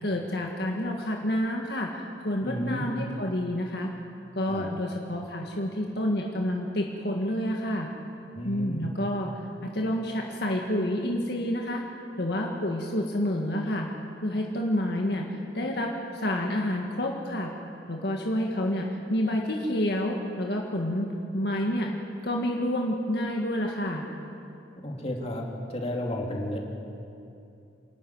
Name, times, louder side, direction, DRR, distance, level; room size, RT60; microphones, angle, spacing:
voice 1, 0.0-3.9 4.3-7.9 8.4-9.3 9.6-11.8 12.2-13.9 14.2-15.3 15.5-17.5 17.9-21.1 21.3-21.9 22.2-24.1, left 1 dB, 65° left, 0 dB, 1.8 m, -29 dB
voice 2, 2.4-2.8 4.5-4.7 8.3-8.9 24.8-25.4 25.7-26.6, left 1 dB, 35° left, 0 dB, 2.8 m, -32 dB
27.5 x 11.5 x 9.4 m, 2.7 s
head